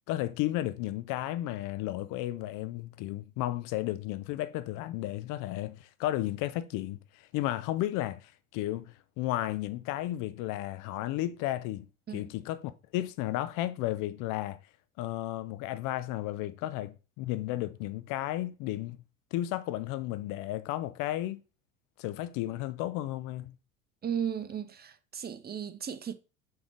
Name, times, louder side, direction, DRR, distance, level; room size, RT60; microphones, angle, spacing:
voice 1, 0.1-14.6 15.0-19.0 19.3-21.4 22.0-23.5, left 15 dB, 50° left, 0.9 m, -33 dB
voice 2, 24.0-26.1, right 8 dB, 25° right, 0.9 m, -35 dB
7.1 x 3.8 x 5.0 m
figure-of-eight pair, 70°, 40 cm